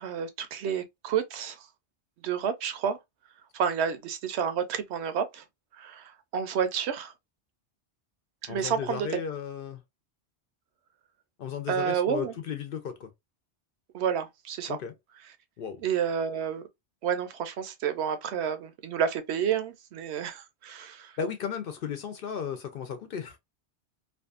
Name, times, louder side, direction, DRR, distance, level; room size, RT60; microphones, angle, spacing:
voice 1, 0.0-1.7 2.2-3.0 3.5-5.4 5.8-7.1 8.4-9.1 11.7-12.3 13.9-14.8 15.8-16.6 17.0-21.2, right 7 dB, 70° right, 0.8 m, -30 dB
voice 2, 8.5-9.8 11.4-13.1 14.7-14.9 15.6-15.8 21.2-23.4, left 7 dB, 60° left, 0.6 m, -35 dB
2.5 x 2.3 x 2.3 m
omnidirectional pair, 1.2 m